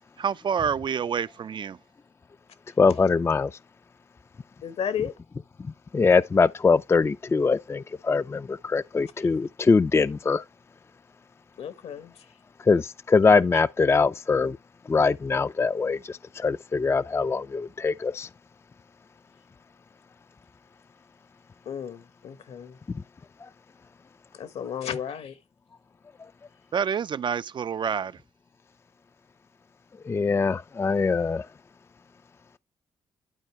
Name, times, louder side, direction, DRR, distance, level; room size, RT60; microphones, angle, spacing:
voice 1, 0.2-1.8 26.7-28.2, right 7 dB, 45° right, 0.4 m, -28 dB
voice 2, 2.8-3.5 5.6-10.4 12.6-14.6 14.9-18.3 22.9-23.0 23.4-23.5 26.2-26.3 30.0-31.5, left 4 dB, 25° left, 0.4 m, -23 dB
voice 3, 4.6-5.1 11.6-12.3 21.6-22.8 24.3-25.4, left 8 dB, 70° left, 1.2 m, -33 dB
11.5 x 4.4 x 3.2 m
supercardioid pair, 60°, 11 cm